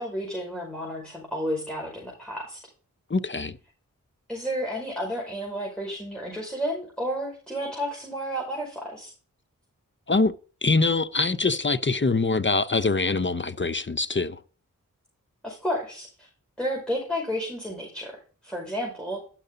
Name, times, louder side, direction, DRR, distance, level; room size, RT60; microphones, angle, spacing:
voice 1, 0.0-2.6 4.3-9.1 15.4-16.3 16.6-19.2, equal, 5° left, 5.1 m, -31 dB
voice 2, 3.1-3.6 10.1-10.3 10.6-14.4, left 3 dB, 35° left, 0.8 m, -24 dB
11.5 x 6.6 x 3.9 m
cardioid pair, 40°, 34 cm